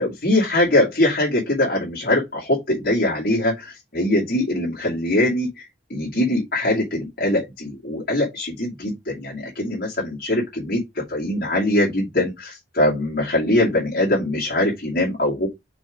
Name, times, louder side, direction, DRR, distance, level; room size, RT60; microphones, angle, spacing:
voice 1, 0.0-15.5, left 1 dB, 50° left, 2.5 m, -22 dB
6.0 x 3.8 x 4.9 m
head